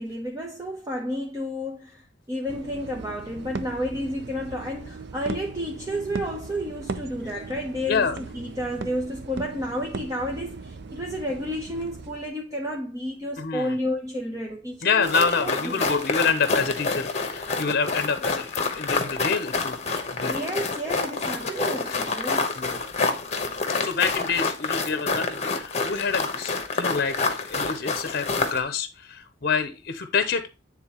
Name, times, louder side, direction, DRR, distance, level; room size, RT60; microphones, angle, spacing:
voice 1, 0.0-15.1 15.4-15.9 20.3-22.5, equal, 20° right, 0.9 m, -31 dB
sound 1, 2.5-12.3, right 4 dB, 60° right, 0.6 m, -38 dB
voice 2, 7.9-8.2 13.4-13.8 14.8-20.3 22.6-22.8 23.7-30.5, left 5 dB, 55° left, 0.7 m, -27 dB
sound 2, 15.0-28.6, left 4 dB, 35° left, 1.0 m, -28 dB
9.4 x 3.7 x 2.9 m
head